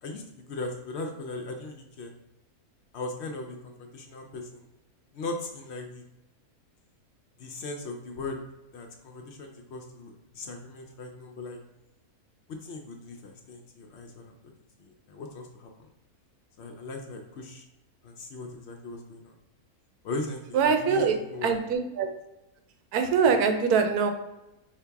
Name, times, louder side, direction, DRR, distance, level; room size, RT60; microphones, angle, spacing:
voice 1, 0.0-2.1 2.9-4.6 5.1-6.0 7.4-8.4 8.7-11.6 12.5-14.3 14.8-15.7 16.6-17.6 18.0-19.3 20.0-21.6, left 2 dB, 65° left, 3 dB, 0.6 m, -38 dB
voice 2, 20.5-21.1 21.4-22.1 22.9-24.1, right 6 dB, 80° right, 6 dB, 1.1 m, -23 dB
5.0 x 2.8 x 3.4 m, 0.96 s
omnidirectional pair, 1.6 m